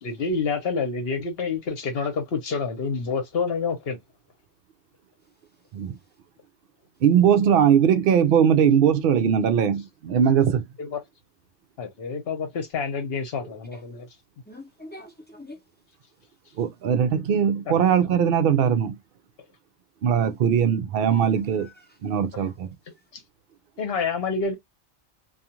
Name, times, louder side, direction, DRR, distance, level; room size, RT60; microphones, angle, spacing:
voice 1, 0.0-4.0 10.8-11.0 11.8-14.1 17.7-17.8 23.1-23.2 23.8-24.6, left 5 dB, 60° left, 1.0 m, -28 dB
voice 2, 7.0-10.6 16.6-19.0 20.0-21.7 22.0-22.7, right 8 dB, 60° right, 0.6 m, -20 dB
voice 3, 13.4-13.8 14.5-15.6 21.1-21.2 22.3-22.5, left 1 dB, 10° left, 0.6 m, -44 dB
2.4 x 2.4 x 2.9 m
omnidirectional pair, 1.2 m